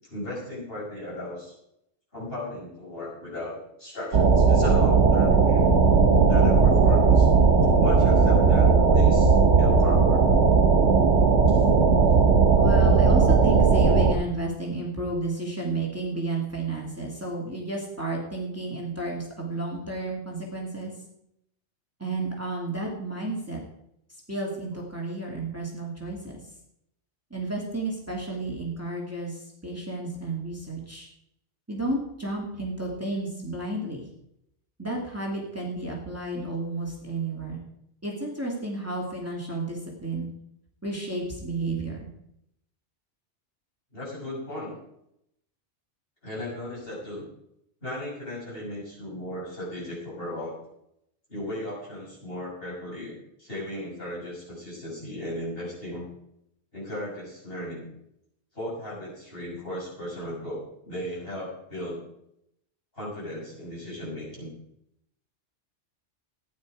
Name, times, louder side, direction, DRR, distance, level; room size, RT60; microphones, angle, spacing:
voice 1, 0.0-1.5 2.1-5.8 6.3-9.3 9.6-10.2 11.5-11.6 43.9-44.8 46.2-47.3 47.8-50.6 51.3-56.1 56.7-57.9 58.5-62.0 62.9-64.5, left 1 dB, 55° left, -6 dB, 6.8 m, -36 dB
sound 1, 4.1-14.1, right 4 dB, 90° right, 1.5 m, -18 dB
voice 2, 12.5-20.9 22.0-23.6 24.3-26.3 27.3-31.1 31.7-34.1 34.8-37.6 38.0-40.3 40.8-42.1, right 2 dB, 15° right, -3 dB, 2.6 m, -32 dB
14.5 x 10.0 x 4.9 m, 0.78 s
omnidirectional pair, 1.2 m